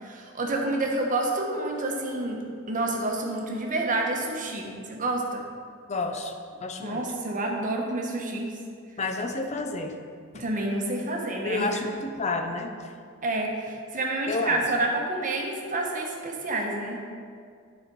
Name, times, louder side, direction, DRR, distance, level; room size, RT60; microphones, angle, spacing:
voice 1, 0.0-2.4 2.7-5.4 6.8-8.5 10.3-11.8 13.2-17.0, right 2 dB, 40° right, 0 dB, 1.0 m, -29 dB
voice 2, 5.9-6.3 6.6-7.0 9.0-10.0 11.4-12.7 14.3-14.6, left 3 dB, 35° left, 5 dB, 0.6 m, -30 dB
9.4 x 4.2 x 4.6 m, 2.2 s
head